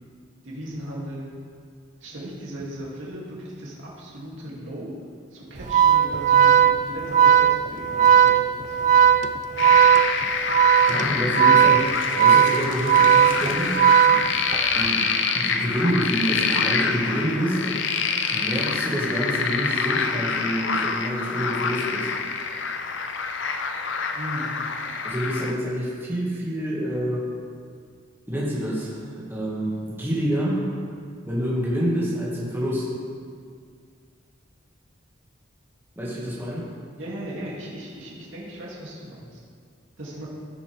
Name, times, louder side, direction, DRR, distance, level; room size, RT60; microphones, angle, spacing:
voice 1, 0.4-1.3 2.0-4.9 5.3-9.1 14.0-14.2 24.1-24.5 37.0-39.4 40.0-40.3, right 1 dB, 80° right, -5 dB, 2.6 m, -37 dB
Organ, 5.6-14.8, right 8 dB, 40° right, 0.4 m, -17 dB
sound 1, 9.6-25.5, left 5 dB, 65° left, 0.6 m, -26 dB
voice 2, 10.8-13.8 14.6-15.1 15.3-17.8 18.3-22.1 25.0-27.3 28.3-30.6 31.2-32.9 36.0-36.7, equal, 10° right, -7 dB, 1.9 m, -27 dB
15.5 x 7.2 x 3.5 m, 2.1 s
head